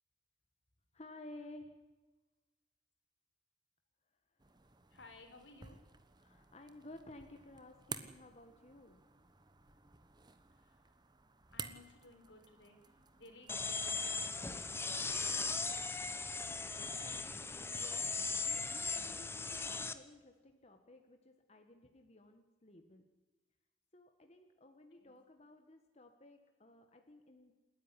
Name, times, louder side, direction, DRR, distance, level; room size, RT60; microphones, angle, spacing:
voice 1, 0.9-1.7 4.5-4.6 6.2-9.0 16.4-23.1 23.9-27.5, left 1 dB, 35° left, 5 dB, 1.6 m, -56 dB
sound 1, 4.4-13.6, right 5 dB, 25° right, 1.3 m, -52 dB
voice 2, 4.9-5.8 10.5-10.8 11.5-15.6 25.0-25.2, left 2 dB, 85° left, 5 dB, 4.1 m, -59 dB
sound 2, 13.5-19.9, left 4 dB, 15° left, 1.0 m, -38 dB
28.0 x 10.5 x 9.9 m, 1.2 s
head